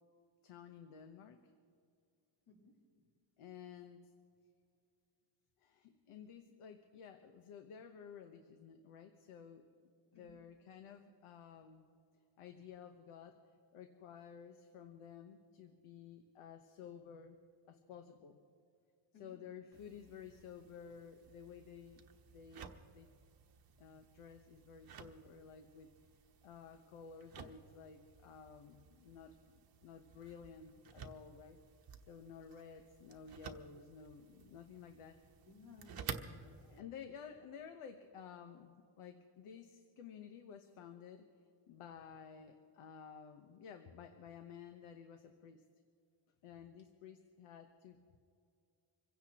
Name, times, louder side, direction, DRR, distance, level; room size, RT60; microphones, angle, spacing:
voice 1, 0.4-1.4 3.4-4.1 5.6-11.8 12.4-17.4 17.7-18.4 19.2-22.0 22.3-23.1 23.8-25.9 26.4-31.6 32.1-35.2 36.6-41.3 41.7-45.6 46.4-48.0, left 7 dB, 85° left, 7 dB, 1.1 m, -53 dB
voice 2, 2.5-3.1 10.1-10.4 19.1-19.4 35.4-36.8, left 3 dB, 50° left, -3 dB, 3.7 m, -61 dB
sound 1, 19.7-36.8, right 6 dB, 45° right, 1.0 m, -54 dB
26.0 x 16.0 x 2.9 m, 2.4 s
cardioid pair, 155°, 50 cm